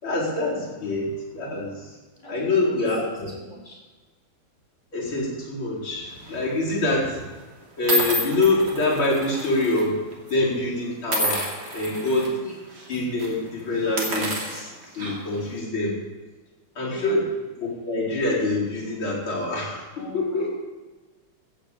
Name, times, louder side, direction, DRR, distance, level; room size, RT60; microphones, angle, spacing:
voice 1, 0.0-2.0 2.3-3.3 4.9-7.3 7.8-10.0 10.3-11.4 11.7-12.3 12.9-16.0 16.8-17.3 17.6-20.5, left 2 dB, 65° left, -5 dB, 5.5 m, -25 dB
voice 2, 2.2-2.7 3.4-3.8 12.4-12.5 12.9-13.0 16.8-17.2 20.0-20.5, left 1 dB, 15° left, -2 dB, 4.8 m, -42 dB
sound 1, 6.2-6.5 7.2-7.3 7.9-9.8 10.1-10.3 11.1-12.3 12.7-12.9 13.2-13.3 13.8-15.4, equal, 50° right, 3.4 m, -29 dB
15.0 x 7.9 x 8.4 m, 1.3 s
omnidirectional pair, 2.4 m